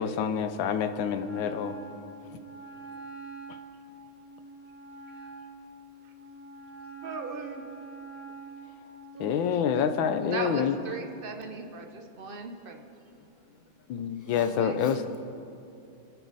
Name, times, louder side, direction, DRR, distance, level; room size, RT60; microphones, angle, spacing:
voice 1, 0.0-1.7 9.2-10.8 13.9-15.0, left 7 dB, 80° left, 9 dB, 1.5 m, -27 dB
Wind instrument woodwind instrument, 1.2-10.8, right 3 dB, 45° left, 2.4 m, -46 dB
voice 2, 7.0-7.7 9.1-9.6 10.2-12.9 14.2-14.8, right 4 dB, 55° right, 4 dB, 0.6 m, -38 dB
voice 3, 14.1-15.2, left 2 dB, 10° left, 1 dB, 1.1 m, -52 dB
23.5 x 9.1 x 4.1 m, 2.7 s
omnidirectional pair, 2.1 m